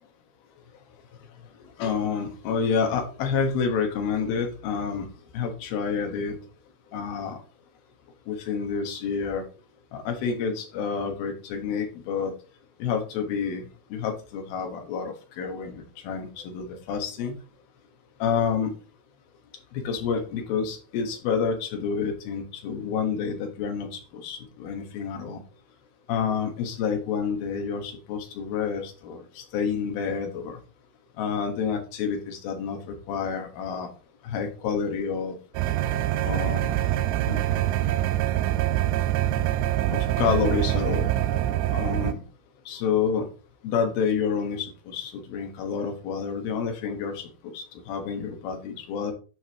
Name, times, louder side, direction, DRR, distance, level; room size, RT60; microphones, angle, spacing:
voice 1, 1.8-5.1 5.3-6.4 6.9-7.4 8.3-9.4 9.9-12.3 12.8-13.6 13.9-17.3 18.2-18.7 19.7-25.4 26.1-30.6 31.2-33.9 34.2-35.4 36.2-36.7 37.3-37.7 39.9-41.1 41.7-42.2 42.7-43.3 43.6-49.1, left 6 dB, 65° left, 3 dB, 3.1 m, -29 dB
sound 1, 35.6-42.1, right 13 dB, 85° right, 2.8 m, -25 dB
9.7 x 5.4 x 3.0 m, 0.36 s
omnidirectional pair, 4.9 m